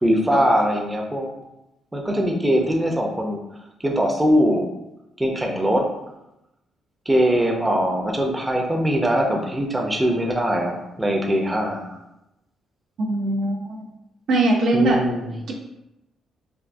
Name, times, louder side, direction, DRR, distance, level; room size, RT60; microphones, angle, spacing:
voice 1, 0.0-1.4 1.9-3.4 3.8-4.7 5.2-5.9 7.1-11.9 14.7-15.2, equal, 10° right, 0 dB, 0.5 m, -21 dB
voice 2, 13.0-13.8 14.3-15.0, right 2 dB, 70° right, -1 dB, 0.6 m, -21 dB
3.5 x 2.6 x 2.5 m, 0.89 s
cardioid pair, 90°, 0 cm